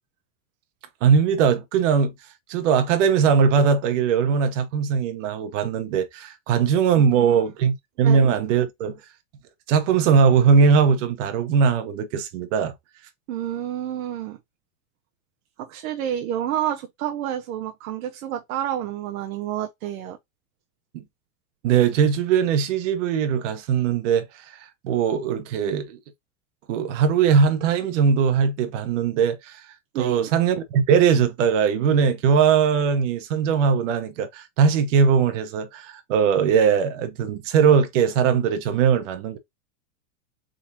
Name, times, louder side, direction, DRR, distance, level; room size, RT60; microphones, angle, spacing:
voice 1, 1.0-2.1 2.5-9.0 9.7-12.7 20.9-21.0 21.6-24.6 24.8-26.0 26.7-29.6 29.9-39.4, right 6 dB, 60° right, 1.1 m, -20 dB
voice 2, 6.9-7.4 8.0-8.2 13.3-14.4 15.6-20.2 29.9-30.3, right 11 dB, 85° right, 0.9 m, -29 dB
4.4 x 3.9 x 2.7 m
supercardioid pair, 175°, 41 cm